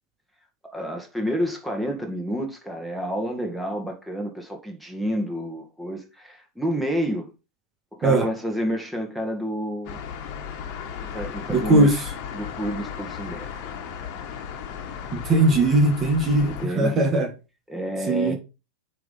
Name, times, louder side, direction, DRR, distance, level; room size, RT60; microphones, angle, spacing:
voice 1, 0.7-7.3 7.9-10.0 11.1-12.0 12.3-13.5 16.4-17.0 17.7-18.3, equal, ahead, 2.1 m, -29 dB
sound 1, 9.8-16.7, left 8 dB, 50° left, 1.7 m, -35 dB
voice 2, 11.5-12.0 15.1-16.5 16.8-17.3 18.1-18.3, right 2 dB, 30° right, 1.8 m, -19 dB
9.1 x 3.6 x 5.6 m
hypercardioid pair, 90°, 0 cm